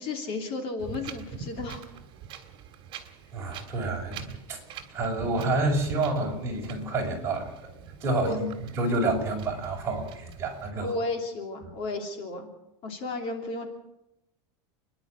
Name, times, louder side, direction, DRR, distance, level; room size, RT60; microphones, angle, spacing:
voice 1, 0.0-1.8 8.1-8.4 10.7-12.5 12.8-13.7, left 2 dB, 45° left, 4 dB, 3.0 m, -33 dB
Wind, 0.8-10.7, right 7 dB, 35° right, 2.8 m, -44 dB
voice 2, 3.3-4.6 4.9-7.7 8.0-10.9, right 2 dB, 20° right, -1 dB, 5.9 m, -29 dB
30.0 x 11.0 x 8.3 m, 0.91 s
supercardioid pair, 165°, 14 cm